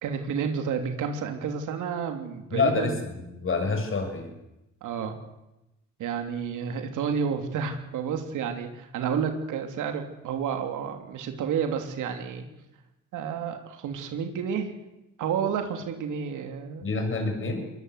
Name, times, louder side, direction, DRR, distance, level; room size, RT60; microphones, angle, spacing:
voice 1, 0.0-2.9 4.8-5.1 6.0-12.5 13.1-14.7 15.2-16.9, right 7 dB, 85° right, 6 dB, 3.2 m, -30 dB
voice 2, 2.5-4.3 16.8-17.6, left 4 dB, 45° left, 5 dB, 6.8 m, -27 dB
22.0 x 21.0 x 8.2 m, 0.94 s
cardioid pair, 90°, 30 cm